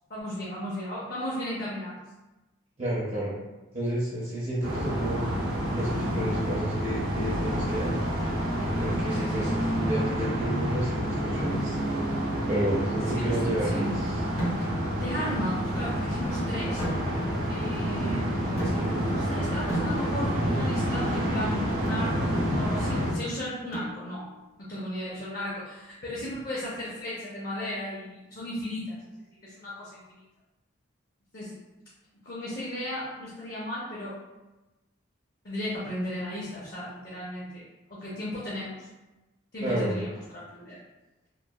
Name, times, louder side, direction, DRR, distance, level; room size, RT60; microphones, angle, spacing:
voice 1, 0.1-2.0 7.5-7.7 9.1-9.9 13.1-14.0 14.6-16.8 17.5-24.2 24.6-29.0 29.4-30.2 31.3-31.6 32.2-34.2 35.4-37.6 37.9-38.9 39.5-40.8, left 1 dB, 45° left, -7 dB, 0.5 m, -35 dB
voice 2, 2.8-3.3 3.7-5.2 5.7-7.9 8.8-9.5 9.8-11.8 12.5-13.9 39.6-39.9, right 1 dB, 30° right, -8 dB, 0.5 m, -30 dB
sound 1, 4.6-23.1, equal, 70° right, 0.6 m, -28 dB
sound 2, 14.4-15.0 16.8-17.5 18.6-19.2 19.7-20.5 21.8-22.2 23.7-24.3, equal, 80° left, 1.0 m, -35 dB
3.0 x 2.2 x 2.2 m, 1.1 s
head